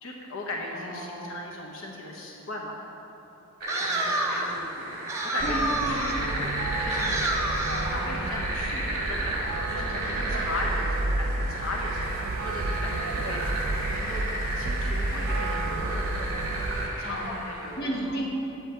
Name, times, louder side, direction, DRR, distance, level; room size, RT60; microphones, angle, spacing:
voice 1, 0.0-2.8 4.5-4.7 5.2-6.5 6.8-13.5 13.9-14.2 14.5-16.4 17.0-18.2, left 2 dB, 75° left, -1 dB, 1.0 m, -37 dB
voice 2, 0.7-1.4 3.8-5.0 5.4-6.1 7.6-8.3 10.1-10.3 17.0-17.5 17.8-18.4, right 1 dB, 50° left, -4 dB, 1.6 m, -35 dB
sound 1, 3.6-17.8, right 1 dB, 45° right, 1.8 m, -33 dB
sound 2, 3.7-4.6 5.1-6.3 6.9-8.0, right 2 dB, 15° right, 0.6 m, -30 dB
sound 3, 5.4-16.9, right 2 dB, 90° right, 0.7 m, -31 dB
8.2 x 8.1 x 4.5 m, 3.0 s
head